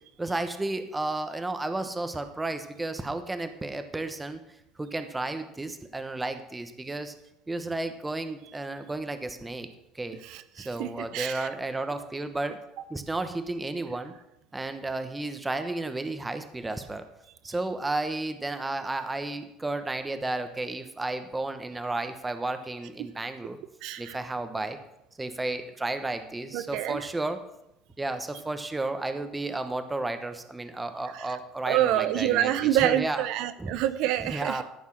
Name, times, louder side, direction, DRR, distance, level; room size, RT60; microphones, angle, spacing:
voice 1, 0.2-4.4 4.8-7.1 7.5-9.7 9.9-10.2 10.6-12.6 12.9-14.1 14.5-17.0 17.4-23.6 24.0-24.8 25.2-27.4 28.0-32.5 32.8-33.2 33.6-33.7 34.2-34.6, right 2 dB, 10° right, 8 dB, 1.1 m, -32 dB
voice 2, 10.2-11.5 23.0-23.1 23.8-24.2 26.5-27.1 31.1-31.4 31.7-34.6, right 12 dB, 65° right, 12 dB, 0.6 m, -27 dB
13.5 x 5.4 x 6.4 m, 0.86 s
supercardioid pair, 115°, 0 cm